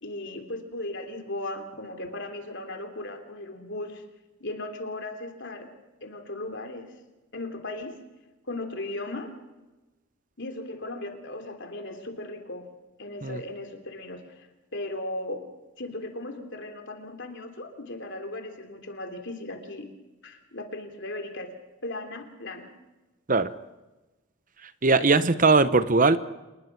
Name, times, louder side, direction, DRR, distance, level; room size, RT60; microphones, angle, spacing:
voice 1, 0.0-4.0 4.4-5.7 6.0-6.9 7.3-8.0 8.5-9.3 10.4-12.7 13.0-15.4 15.8-19.9 20.2-21.5 21.8-22.7, left 2 dB, 55° left, 5 dB, 3.3 m, -37 dB
voice 2, 24.8-26.2, right 3 dB, 40° right, 13 dB, 1.0 m, -20 dB
27.5 x 20.5 x 6.1 m, 1.1 s
head